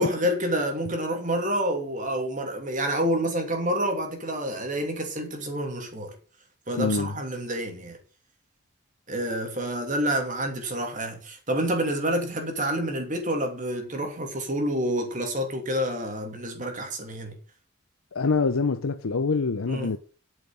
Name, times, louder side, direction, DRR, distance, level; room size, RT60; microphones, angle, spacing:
voice 1, 0.0-6.1 6.7-8.0 9.1-17.4 19.7-19.9, equal, 35° right, 2.8 m, -28 dB
voice 2, 6.8-7.2 18.1-20.0, left 4 dB, 85° left, 0.7 m, -25 dB
8.9 x 6.4 x 7.6 m
head